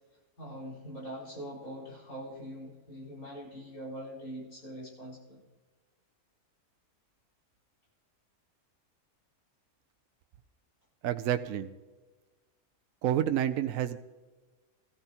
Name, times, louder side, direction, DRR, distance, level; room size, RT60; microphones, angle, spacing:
voice 1, 0.4-5.4, equal, 80° left, -6 dB, 5.3 m, -43 dB
voice 2, 11.0-11.7 13.0-14.0, right 11 dB, 75° right, 8 dB, 1.0 m, -29 dB
18.5 x 14.0 x 2.9 m, 1.3 s
omnidirectional pair, 1.5 m